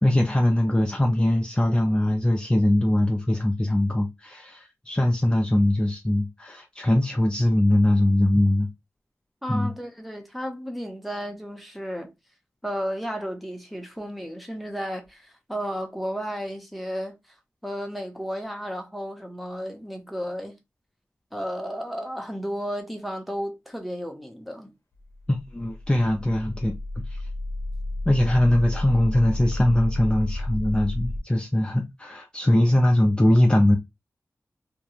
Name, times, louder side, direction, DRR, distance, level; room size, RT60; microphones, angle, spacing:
voice 1, 0.0-8.7 9.5-9.7 25.3-26.7 27.1-27.2 28.1-33.8, left 1 dB, 15° left, 0.4 m, -21 dB
voice 2, 9.4-12.1 12.6-17.1 17.6-20.5 21.3-24.7, equal, ahead, 0.8 m, -33 dB
sound 1, 25.0-31.2, left 1 dB, 55° left, 0.8 m, -32 dB
2.4 x 2.2 x 2.9 m
wide cardioid pair, 70°, 6 cm